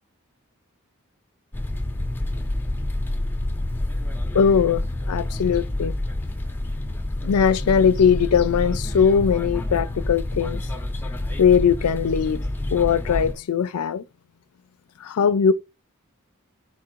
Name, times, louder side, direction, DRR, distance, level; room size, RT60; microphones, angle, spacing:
sound 1, 1.5-13.3, left 1 dB, 10° left, 0.5 m, -28 dB
voice 1, 4.3-4.8 5.1-5.9 7.2-10.6 11.4-12.4 12.7-14.0 15.0-15.5, left 7 dB, 90° left, 0.4 m, -20 dB
4.2 x 2.4 x 4.4 m
head